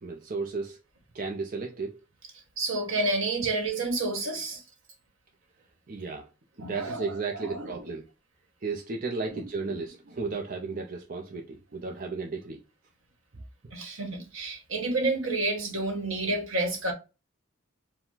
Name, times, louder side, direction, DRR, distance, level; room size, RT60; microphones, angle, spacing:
voice 1, 0.0-0.8 1.1-2.0 5.9-6.3 6.6-8.0 8.6-12.6, right 4 dB, 40° right, 0.5 m, -34 dB
voice 2, 2.6-4.6 6.6-7.7 9.3-9.4 13.7-16.9, right 2 dB, 75° right, 1.4 m, -30 dB
4.7 x 2.2 x 3.7 m
head